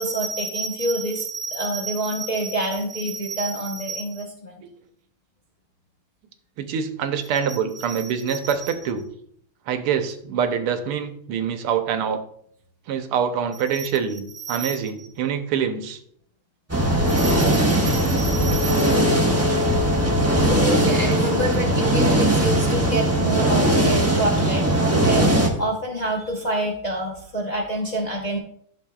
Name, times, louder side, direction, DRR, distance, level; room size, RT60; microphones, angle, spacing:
voice 1, 0.0-4.6 7.7-8.5 14.4-14.8 17.1-19.1 20.3-28.4, right 1 dB, 65° left, -3 dB, 0.4 m, -27 dB
voice 2, 6.6-9.0 9.7-12.2 12.9-16.0, right 7 dB, 85° right, 8 dB, 1.7 m, -25 dB
sound 1, 16.7-25.5, right 1 dB, 15° right, 0.5 m, -19 dB
11.5 x 6.5 x 2.3 m, 0.66 s
omnidirectional pair, 2.4 m